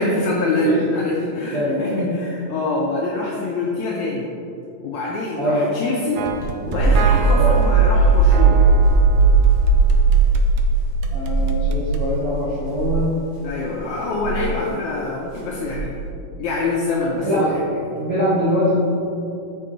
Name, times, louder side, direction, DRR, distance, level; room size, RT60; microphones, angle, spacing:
voice 1, 0.0-4.3 4.8-6.2 6.7-8.7 13.4-16.0 16.4-17.9, left 3 dB, 80° left, -3 dB, 1.7 m, -25 dB
voice 2, 1.5-2.1 5.3-5.7 7.3-7.6 11.1-13.1 14.6-14.7 17.2-17.5 18.0-18.8, equal, 70° right, -9 dB, 1.3 m, -23 dB
sound 1, 6.2-10.7 11.0-12.1, right 5 dB, 85° right, 1.7 m, -30 dB
sound 2, 6.4-12.3 12.7-13.0 14.2-14.5 15.7-16.1, right 4 dB, 45° left, 1.5 m, -16 dB
6.6 x 4.5 x 3.8 m, 2.7 s
omnidirectional pair, 3.9 m